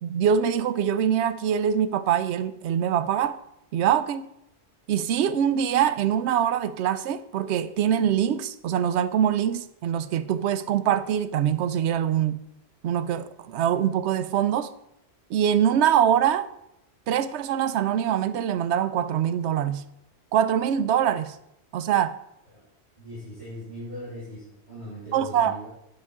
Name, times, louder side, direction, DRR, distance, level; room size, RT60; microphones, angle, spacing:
voice 1, 0.0-3.4 3.7-4.3 4.9-12.4 12.8-14.7 15.3-16.5 17.1-19.8 20.3-21.4 21.7-22.2 25.1-25.6, right 9 dB, 85° right, 0.8 m, -24 dB
voice 2, 23.0-25.7, equal, 45° left, 4.0 m, -39 dB
10.0 x 6.7 x 3.6 m
omnidirectional pair, 1.1 m